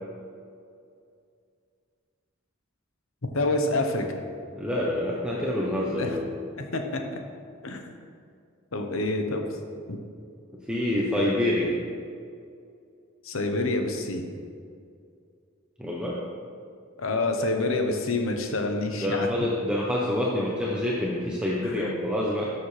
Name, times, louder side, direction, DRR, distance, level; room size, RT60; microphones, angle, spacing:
voice 1, 3.3-4.2 6.0-6.1 6.6-7.2 7.6-8.0 8.7-9.4 9.9-10.0 13.2-14.3 17.0-19.3 21.8-21.9, left 2 dB, 75° left, 4 dB, 1.0 m, -27 dB
voice 2, 4.5-6.2 10.5-11.7 15.8-16.2 19.0-22.5, left 1 dB, 5° right, -5 dB, 0.8 m, -27 dB
12.0 x 7.0 x 3.3 m, 2.3 s
head